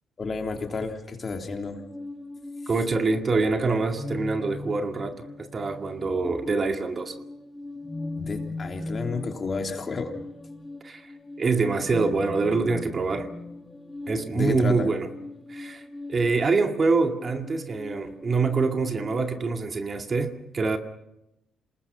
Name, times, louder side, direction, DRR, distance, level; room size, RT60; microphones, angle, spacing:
voice 1, 0.2-1.8 8.2-10.1 14.3-14.9, left 4 dB, 40° left, 3 dB, 3.4 m, -31 dB
sound 1, 1.5-19.3, left 2 dB, 20° left, 2.3 m, -39 dB
voice 2, 2.7-7.2 10.8-11.1 11.4-13.3 14.1-15.1 15.5-15.8 16.1-20.8, right 4 dB, 40° right, 5 dB, 2.2 m, -25 dB
27.5 x 19.5 x 5.7 m, 0.88 s
hypercardioid pair, 50°, 0 cm